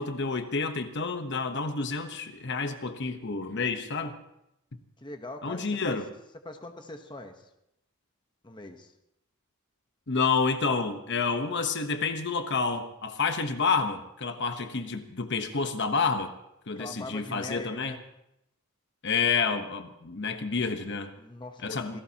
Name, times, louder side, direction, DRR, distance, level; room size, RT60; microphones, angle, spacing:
voice 1, 0.0-4.2 5.4-6.0 10.1-16.3 16.7-17.9 19.0-21.1 21.6-22.0, left 4 dB, 55° left, 7 dB, 1.0 m, -29 dB
voice 2, 5.0-6.0 6.4-7.5 8.4-8.9 16.7-18.0 21.2-22.0, left 2 dB, 20° left, 6 dB, 1.0 m, -42 dB
26.5 x 17.0 x 2.9 m, 0.83 s
head